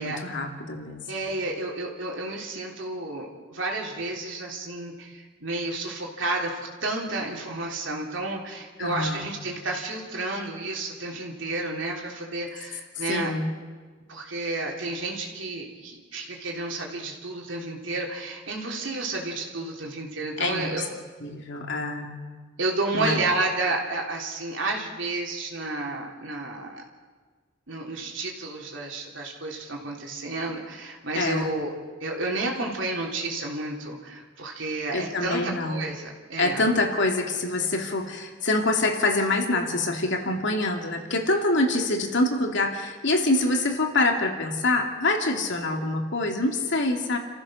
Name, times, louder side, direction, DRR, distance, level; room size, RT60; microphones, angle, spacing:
voice 1, 0.0-1.0 8.8-9.2 13.0-13.5 20.4-20.9 21.2-22.1 22.9-23.2 31.1-31.6 34.9-35.9 36.4-47.2, left 2 dB, 65° left, 3 dB, 2.9 m, -25 dB
voice 2, 1.1-13.3 14.1-20.9 22.6-26.8 27.7-31.7 32.0-36.7, right 2 dB, 70° right, -1 dB, 3.4 m, -31 dB
30.0 x 15.0 x 6.4 m, 1.4 s
head